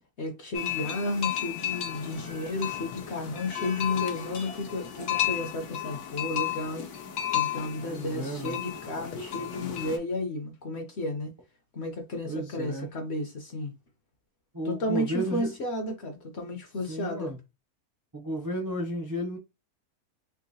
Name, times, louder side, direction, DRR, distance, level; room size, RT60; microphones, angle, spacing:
voice 1, 0.2-6.8 7.3-11.3 11.7-13.7 14.6-17.3, left 1 dB, 55° left, 0.8 m, -32 dB
sound 1, 0.5-10.0, left 11 dB, 90° left, 1.3 m, -33 dB
voice 2, 7.8-8.6 9.0-9.1 12.2-12.9 14.5-15.5 16.9-17.4 18.1-19.4, equal, 25° right, 0.4 m, -33 dB
3.7 x 2.7 x 2.7 m
omnidirectional pair, 1.6 m